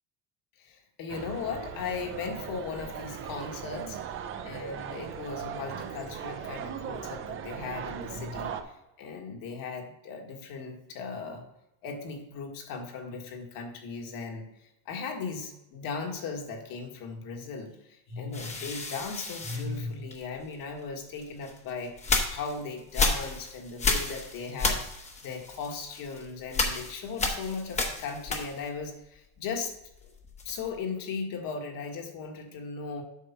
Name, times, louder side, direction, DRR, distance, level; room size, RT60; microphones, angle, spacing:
voice 1, 0.6-4.0 4.4-11.4 11.8-29.7 30.5-33.0, left 4 dB, 55° left, 2 dB, 1.8 m, -37 dB
sound 1, 1.1-8.6, right 8 dB, 30° right, 0.5 m, -39 dB
sound 2, 18.3-20.5 21.2-28.9 29.1-30.8, left 3 dB, 15° left, 1.0 m, -32 dB
8.3 x 4.8 x 5.9 m, 0.91 s
cardioid pair, 165°, 41 cm